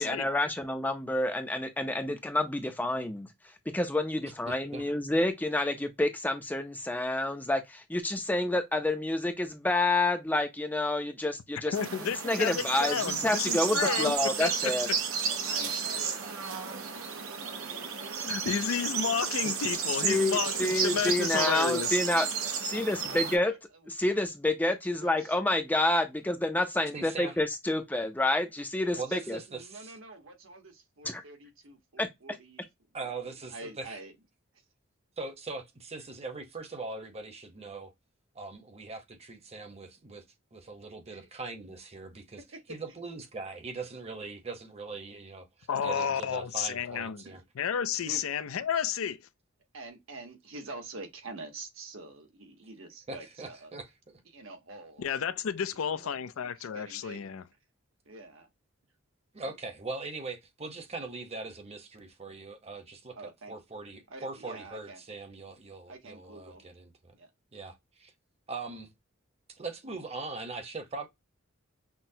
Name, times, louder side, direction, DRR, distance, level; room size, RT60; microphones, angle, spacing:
voice 1, 0.0-3.3 3.7-11.7 12.2-14.9 20.0-22.3 22.6-23.5 23.9-29.4 31.0-31.2 32.0-32.1, left 2 dB, 10° left, 0.4 m, -28 dB
voice 2, 4.5-4.8 19.4-19.5 26.9-27.4 28.9-29.9 32.9-34.0 35.2-37.9 38.3-40.2 40.5-42.4 42.7-45.5 45.8-47.4 53.1-54.2 55.9-56.0 59.3-67.1 67.5-68.1 68.5-68.9 69.5-71.1, right 3 dB, 30° right, 0.9 m, -41 dB
voice 3, 11.7-15.0 18.2-22.0 45.7-47.2 47.6-49.2 55.0-57.4, left 7 dB, 75° left, 0.4 m, -31 dB
sound 1, 11.7-23.4, right 6 dB, 85° right, 0.8 m, -32 dB
voice 4, 13.7-14.2 15.5-16.2 16.4-18.8 19.2-21.5 23.0-23.9 25.0-25.4 28.9-29.2 29.5-32.7 33.0-34.1 41.1-41.2 47.2-47.4 48.0-48.3 49.7-53.7 54.3-55.3 55.9-56.2 56.6-57.4 58.1-58.5 59.4-59.6 63.1-63.5 64.1-65.0 65.9-66.7 67.1-67.3, right 3 dB, 65° right, 1.2 m, -46 dB
5.9 x 2.1 x 2.7 m
head